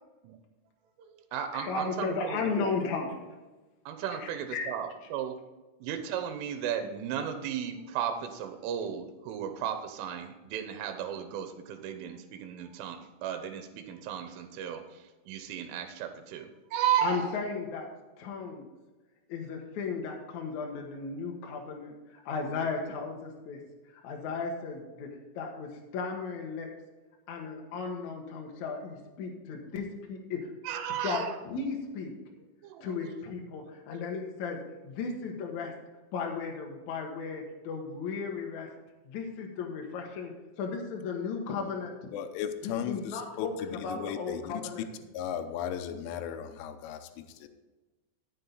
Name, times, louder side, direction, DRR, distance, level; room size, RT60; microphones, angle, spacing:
voice 1, 1.0-2.9 3.9-5.4 5.8-17.3 30.6-31.4 32.6-33.2 33.9-34.3, right 9 dB, 80° right, 8 dB, 3.5 m, -35 dB
voice 2, 1.5-3.2 4.2-4.7 17.0-17.9 18.2-18.7 19.3-23.6 23.9-26.7 27.3-30.5 31.0-32.1 32.8-34.6 34.8-35.7 36.1-38.7 39.1-41.9 42.6-44.8, left 5 dB, 60° left, 1 dB, 2.0 m, -35 dB
voice 3, 42.1-43.5 43.9-44.4 45.1-47.5, left 9 dB, 80° left, 7 dB, 3.3 m, -36 dB
13.5 x 7.7 x 4.0 m, 1.2 s
omnidirectional pair, 5.7 m